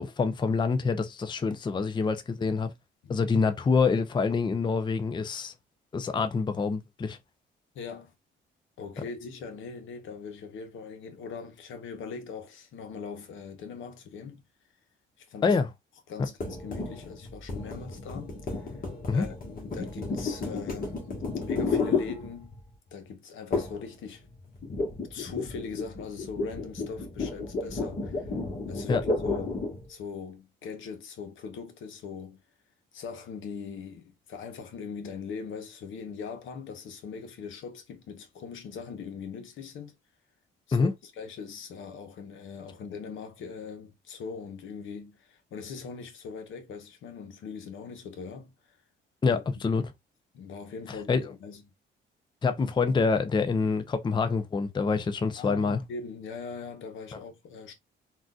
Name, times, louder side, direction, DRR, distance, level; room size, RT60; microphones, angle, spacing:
voice 1, 0.0-2.7 3.1-5.5 5.9-7.2 15.4-15.7 19.1-19.2 28.9-29.0 40.7-40.9 49.2-49.8 50.9-51.2 52.4-55.8, left 4 dB, 25° left, 0.5 m, -26 dB
voice 2, 7.7-8.1 8.8-14.4 15.2-15.6 16.1-18.8 19.1-22.5 22.9-24.3 25.1-28.3 28.7-32.4 32.9-39.9 40.7-48.5 49.3-49.4 50.3-51.7 55.4-57.7, left 5 dB, 75° left, 1.0 m, -41 dB
sound 1, 16.4-22.7 23.5-23.9 24.2-29.9, left 3 dB, 45° left, 1.4 m, -32 dB
3.8 x 2.5 x 2.3 m
cardioid pair, 90°, 20 cm